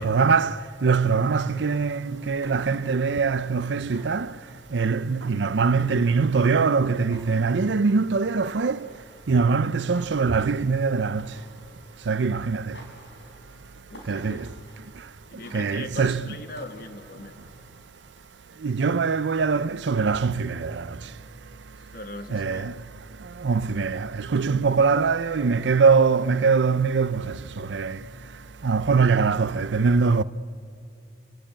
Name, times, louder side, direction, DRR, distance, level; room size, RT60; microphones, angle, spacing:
voice 1, 0.0-4.3 4.7-8.8 9.3-11.3 12.1-12.7 14.1-14.5 15.5-16.3 18.6-20.9 22.3-22.7 23.4-28.0 28.6-30.2, right 5 dB, 85° right, 0.6 m, -22 dB
sound 1, 1.2-18.4, left 1 dB, 80° left, 5.9 m, -52 dB
voice 2, 13.9-14.5 15.3-17.3 21.9-22.7, left 2 dB, 55° left, 1.5 m, -40 dB
30.0 x 19.0 x 8.8 m
head